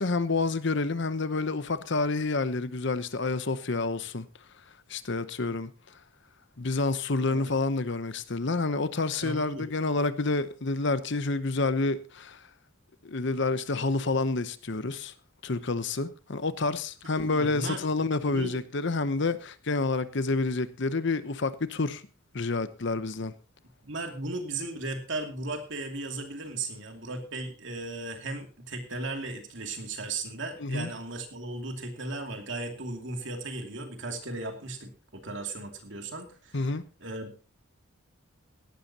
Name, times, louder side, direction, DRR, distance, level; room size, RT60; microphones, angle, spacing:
voice 1, 0.0-4.2 4.9-5.7 6.6-12.4 13.0-15.1 15.4-22.0 22.3-23.3 30.6-30.9 36.5-36.8, left 3 dB, 60° left, 0.9 m, -28 dB
voice 2, 9.2-9.7 17.1-18.6 23.8-36.6 37.0-37.6, right 2 dB, 60° right, 2.7 m, -36 dB
17.5 x 12.0 x 2.9 m
head